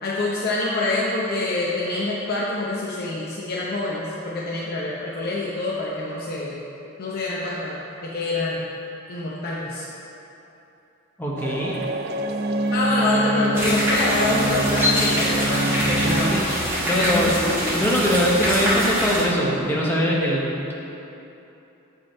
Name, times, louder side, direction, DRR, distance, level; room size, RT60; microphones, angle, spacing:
voice 1, 0.0-6.6 7.0-7.7 8.0-8.7 9.1-9.9 12.7-16.3 16.9-17.8, left 2 dB, 50° left, -6 dB, 0.7 m, -26 dB
voice 2, 11.2-11.8 15.8-16.4 16.9-17.3 17.7-20.7, equal, 10° left, -4 dB, 1.0 m, -22 dB
sound 1, 11.4-16.4, right 1 dB, 50° right, 0.4 m, -25 dB
sound 2, 13.5-19.2, equal, 10° right, 1.3 m, -24 dB
7.8 x 5.5 x 4.3 m, 3.0 s
head